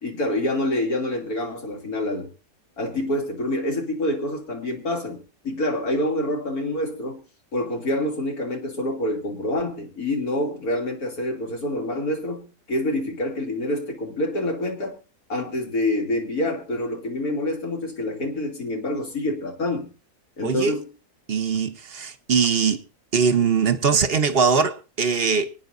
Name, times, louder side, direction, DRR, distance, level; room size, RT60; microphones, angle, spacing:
voice 1, 0.0-2.3 2.8-7.2 7.5-15.0 15.3-19.9 20.4-20.8, left 1 dB, 65° left, 3.4 m, -27 dB
voice 2, 20.4-20.8 21.3-22.8 23.1-25.5, right 5 dB, 40° right, 1.2 m, -21 dB
25.0 x 9.5 x 2.7 m
omnidirectional pair, 1.7 m